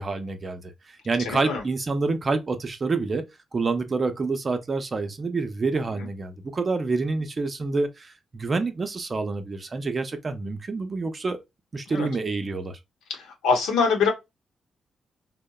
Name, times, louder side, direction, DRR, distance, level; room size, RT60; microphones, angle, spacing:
voice 1, 0.0-11.4 11.7-12.8, right 3 dB, 45° right, 0.6 m, -28 dB
voice 2, 1.2-1.6 6.0-6.1 11.9-12.1 13.1-14.1, left 5 dB, 90° left, 0.8 m, -24 dB
2.7 x 2.1 x 2.3 m
supercardioid pair, 55°, 0 cm